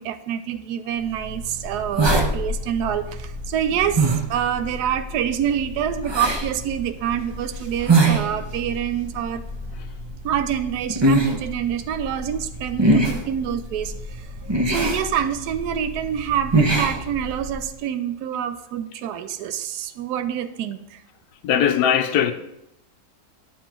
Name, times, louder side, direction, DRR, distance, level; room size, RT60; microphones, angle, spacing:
voice 1, 0.0-9.4 10.2-14.3 14.7-21.0, right 9 dB, 80° right, 1.1 m, -26 dB
sound 1, 1.1-17.7, right 2 dB, 25° right, 0.5 m, -25 dB
voice 2, 21.4-22.3, left 9 dB, 75° left, 1.1 m, -19 dB
10.5 x 7.2 x 3.0 m
omnidirectional pair, 1.8 m